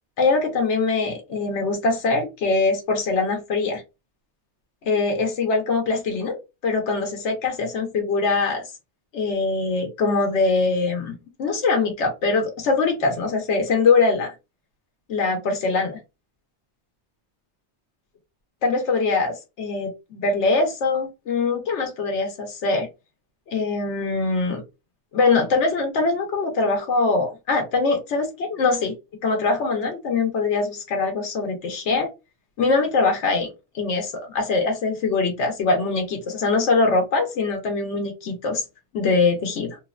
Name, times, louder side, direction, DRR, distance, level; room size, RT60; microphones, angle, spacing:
voice 1, 0.2-3.8 4.8-8.6 9.1-14.3 15.1-16.0 18.6-22.9 23.5-24.6 25.1-28.9 29.2-32.1 32.6-33.5 33.7-38.6 38.9-39.8, left 3 dB, 85° left, 1.0 m, -22 dB
3.1 x 2.1 x 2.3 m
omnidirectional pair, 1.1 m